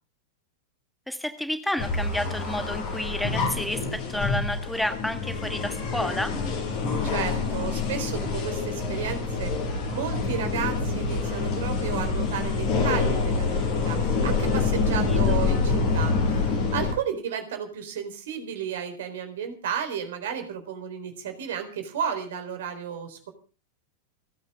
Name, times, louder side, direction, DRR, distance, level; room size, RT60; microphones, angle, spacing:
voice 1, 1.1-6.4 15.1-15.4, left 1 dB, 5° left, 9 dB, 1.4 m, -30 dB
sound 1, 1.8-16.9, left 4 dB, 45° left, 7.9 m, -26 dB
voice 2, 7.0-9.5 9.9-23.3, right 8 dB, 60° right, 9 dB, 4.0 m, -33 dB
29.0 x 9.7 x 3.6 m, 0.36 s
figure-of-eight pair, 90°, 0 cm